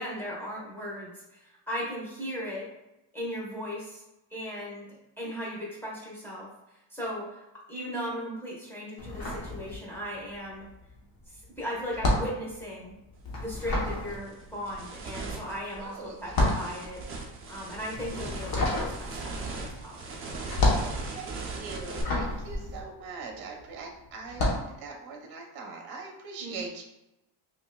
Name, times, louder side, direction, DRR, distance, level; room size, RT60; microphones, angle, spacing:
voice 1, 0.0-2.7 3.1-4.0 4.3-4.9 5.2-10.7 11.3-12.9 13.4-17.0 17.5-20.0 26.4-26.6, equal, 5° left, -5 dB, 1.0 m, -37 dB
sound 1, 9.0-10.2 10.5-23.7 24.2-24.7, left 2 dB, 50° left, 1.0 m, -30 dB
sound 2, 13.2-13.3 13.8-22.0, right 3 dB, 30° right, 0.6 m, -39 dB
voice 2, 15.7-16.6 20.8-26.8, right 4 dB, 50° right, 1 dB, 0.9 m, -42 dB
5.4 x 2.5 x 2.2 m, 0.93 s
cardioid pair, 170°, 47 cm